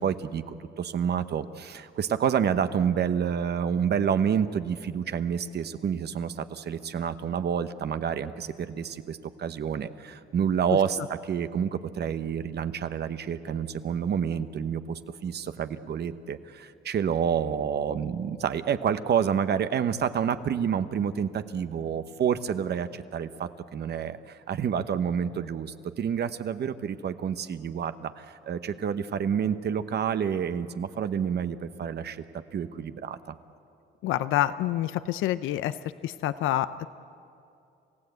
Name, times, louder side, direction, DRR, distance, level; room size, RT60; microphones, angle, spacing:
voice 1, 0.0-32.2 32.5-33.3, right 8 dB, 55° right, 11 dB, 1.0 m, -29 dB
voice 2, 34.0-35.8 36.0-36.9, left 13 dB, 85° left, 13 dB, 0.5 m, -27 dB
28.0 x 16.0 x 8.1 m, 2.6 s
cardioid pair, 90°, 20 cm